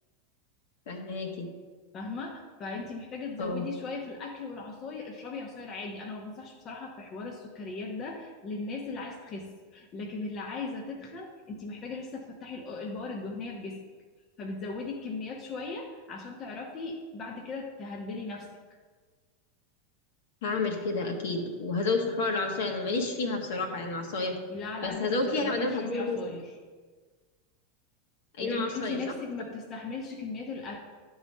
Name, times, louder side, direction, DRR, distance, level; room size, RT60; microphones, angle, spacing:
voice 1, 0.9-1.5 3.4-3.7 20.4-24.3 24.8-26.4 28.4-29.0, left 3 dB, 60° left, 2 dB, 1.4 m, -30 dB
voice 2, 1.9-13.8 14.4-18.5 24.5-26.6 28.4-30.8, left 3 dB, 35° left, 1 dB, 1.0 m, -38 dB
11.0 x 4.0 x 5.4 m, 1.5 s
figure-of-eight pair, 90°, 0 cm